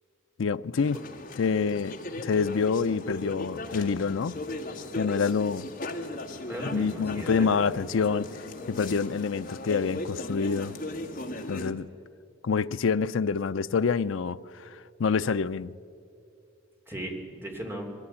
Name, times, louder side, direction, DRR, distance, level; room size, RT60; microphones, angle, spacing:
voice 1, 0.4-1.0 1.4-4.3 4.9-5.7 6.7-8.3 8.7-10.7 11.5-11.9 12.4-15.7, left 5 dB, 70° left, 0.5 m, -27 dB
sound 1, 0.8-11.7, left 2 dB, 45° left, 1.5 m, -38 dB
voice 2, 6.5-7.7 16.9-17.9, right 1 dB, 10° right, 2.9 m, -37 dB
22.0 x 15.5 x 8.6 m
head